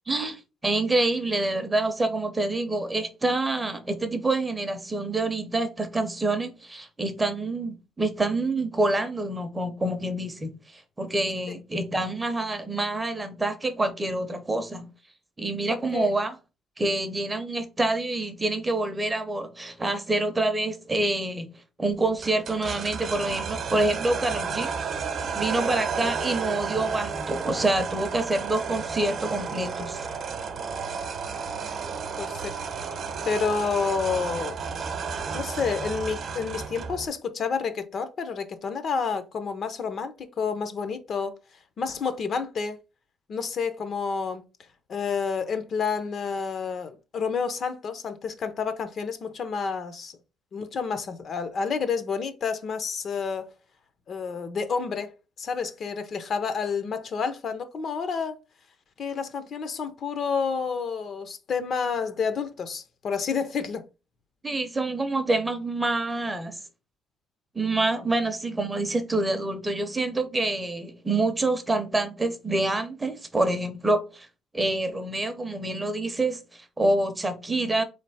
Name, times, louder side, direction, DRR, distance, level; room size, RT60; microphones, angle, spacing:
voice 1, 0.1-14.9 15.4-16.4 16.8-21.5 21.8-24.7 25.4-30.1 64.4-66.6 67.5-74.3 74.5-77.8, right 2 dB, 15° right, 0.6 m, -27 dB
sound 1, 22.2-37.1, right 5 dB, 45° right, 0.8 m, -32 dB
voice 2, 32.2-32.6 33.3-34.6 35.3-41.3 41.8-42.8 43.3-44.4 44.9-50.1 50.5-53.5 54.1-55.1 55.4-58.4 59.0-63.8, left 5 dB, 40° left, 0.6 m, -29 dB
4.0 x 3.2 x 4.0 m
cardioid pair, 155°, 0 cm